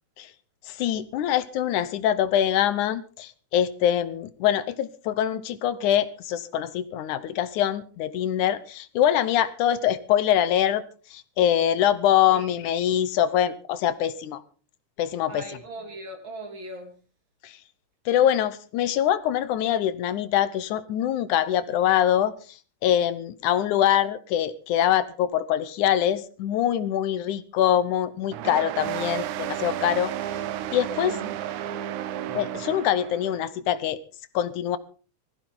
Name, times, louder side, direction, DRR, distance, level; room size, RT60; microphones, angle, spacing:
voice 1, 0.7-10.8 11.1-14.4 15.0-15.5 17.4-17.6 18.1-22.3 22.8-30.1 30.7-31.2 32.3-34.0 34.3-34.8, left 10 dB, 80° left, 14 dB, 2.4 m, -24 dB
voice 2, 15.3-16.9 30.9-31.6, right 2 dB, 40° right, 4 dB, 3.3 m, -39 dB
sound 1, 28.3-33.4, right 12 dB, 85° right, 2.4 m, -32 dB
20.5 x 15.0 x 3.9 m, 0.38 s
omnidirectional pair, 3.5 m